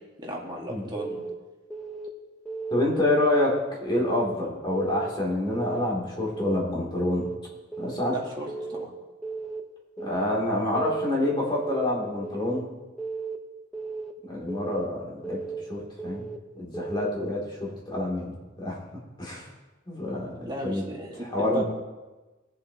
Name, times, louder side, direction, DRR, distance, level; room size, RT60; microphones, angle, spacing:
voice 1, 0.2-1.2 8.1-8.9 20.4-21.6, right 1 dB, 20° right, -2 dB, 1.9 m, -35 dB
Keyboard (musical) / Alarm, 1.0-1.3 1.7-2.1 2.5-2.8 3.2-3.6 4.0-4.3 4.7-5.1 5.5-5.8 6.2-6.6 7.0-7.3 7.7-8.1 8.5-8.9 9.2-9.6 10.0-10.4 10.7-11.1 11.5-11.9 12.2-12.6 13.0-13.4 13.7-14.1 14.5-14.9 15.2-15.6 16.0-16.4 16.7-17.1, right 4 dB, 5° left, 0.8 m, -35 dB
voice 2, 2.7-7.3 7.8-8.1 10.0-12.6 14.3-15.4 15.7-16.3 16.5-18.3 18.6-18.8 19.2-19.5 19.9-20.8 21.2-21.6, left 1 dB, 25° left, -3 dB, 2.9 m, -27 dB
20.0 x 7.5 x 3.0 m, 1.2 s
head